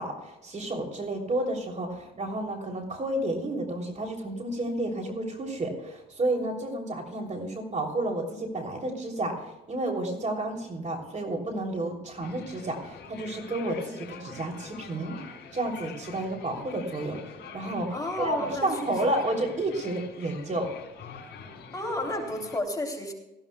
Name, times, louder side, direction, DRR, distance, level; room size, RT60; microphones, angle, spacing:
voice 1, 0.0-17.2 17.5-20.7, right 1 dB, 35° right, 2 dB, 3.3 m, -31 dB
sound 1, 12.2-22.6, left 5 dB, 60° left, 5.7 m, -45 dB
voice 2, 17.9-18.7 19.1-19.2 21.7-23.1, left 1 dB, 20° left, 0 dB, 3.4 m, -32 dB
19.0 x 14.5 x 2.3 m, 0.98 s
cardioid pair, 90°, 20 cm